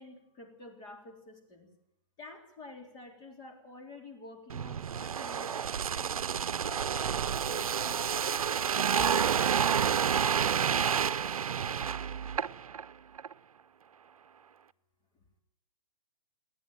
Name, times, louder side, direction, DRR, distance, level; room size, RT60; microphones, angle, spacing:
voice 1, 0.0-1.7 2.2-6.2 6.6-8.0, left 2 dB, 25° left, 2 dB, 3.7 m, -49 dB
sound 1, 4.5-12.8 13.2-13.3, right 8 dB, 85° right, 0.7 m, -29 dB
29.0 x 10.0 x 9.2 m, 0.80 s
hypercardioid pair, 145°, 18 cm